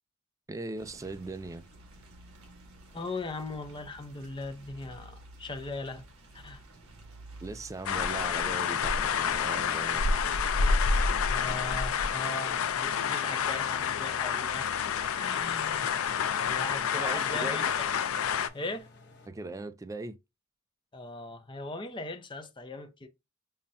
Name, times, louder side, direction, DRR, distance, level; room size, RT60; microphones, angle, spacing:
voice 1, 0.5-1.6 7.4-10.1 15.0-15.2 16.9-17.7 19.3-20.2, right 2 dB, 15° right, 0.3 m, -39 dB
sound 1, 0.8-10.9, right 1 dB, 85° right, 1.1 m, -52 dB
voice 2, 2.9-6.1 6.3-6.6 11.3-14.7 15.1-15.9 16.5-17.7 18.5-18.9 20.9-23.1, left 2 dB, 25° left, 0.6 m, -39 dB
sound 2, 7.9-18.5, left 6 dB, 75° left, 0.4 m, -28 dB
sound 3, 9.2-19.3, left 3 dB, 55° left, 1.1 m, -53 dB
5.5 x 2.1 x 2.5 m
head